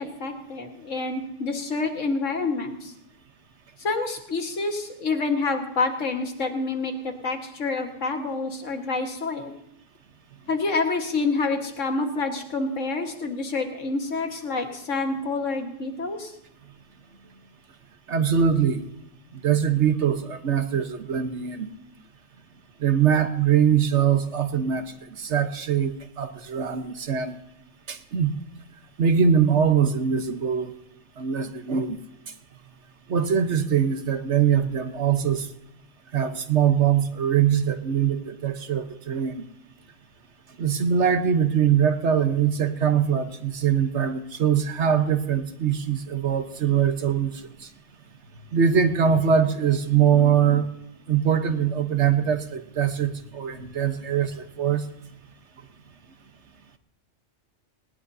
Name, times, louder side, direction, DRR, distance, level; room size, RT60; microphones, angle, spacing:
voice 1, 0.0-2.9 3.8-9.5 10.5-16.3, left 3 dB, 85° left, 4 dB, 2.0 m, -28 dB
voice 2, 18.1-18.9 19.3-21.7 22.8-24.8 25.1-27.4 27.9-28.3 29.0-30.7 31.2-32.0 33.1-35.5 36.1-39.5 40.6-47.5 48.5-50.7 51.1-54.8, right 8 dB, 70° right, 8 dB, 1.4 m, -22 dB
19.5 x 19.0 x 2.8 m, 0.81 s
omnidirectional pair, 1.3 m